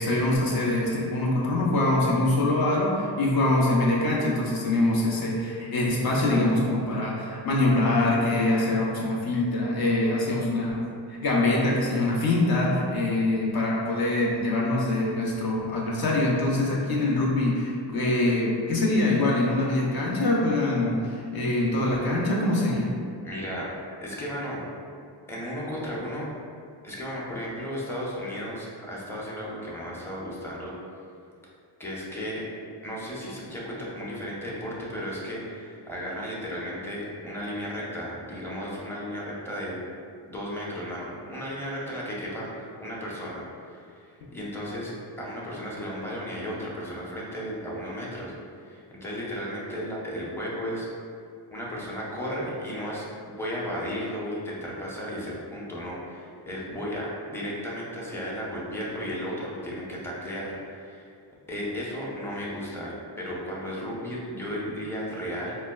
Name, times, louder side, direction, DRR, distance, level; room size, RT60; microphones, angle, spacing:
voice 1, 0.0-10.8 11.1-22.9, left 2 dB, 50° left, -3 dB, 0.8 m, -24 dB
voice 2, 23.2-23.7 24.0-24.6 25.3-26.3 26.8-30.7 31.8-32.4 32.8-39.8 40.3-43.4 43.7-44.9 45.2-50.9 51.5-53.0 53.4-61.1 61.5-65.6, equal, 5° left, -6 dB, 0.7 m, -34 dB
4.2 x 2.2 x 2.3 m, 2.4 s
cardioid pair, 70°, 48 cm